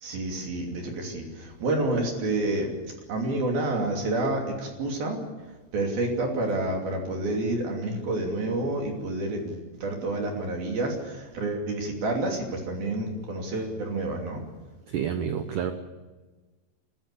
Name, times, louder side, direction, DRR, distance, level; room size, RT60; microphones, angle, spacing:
voice 1, 0.0-2.7 3.1-5.2 5.7-14.4, right 2 dB, 55° right, 1 dB, 4.5 m, -29 dB
voice 2, 14.9-15.7, right 8 dB, 85° right, 8 dB, 1.8 m, -29 dB
25.5 x 15.0 x 8.4 m, 1.3 s
omnidirectional pair, 5.3 m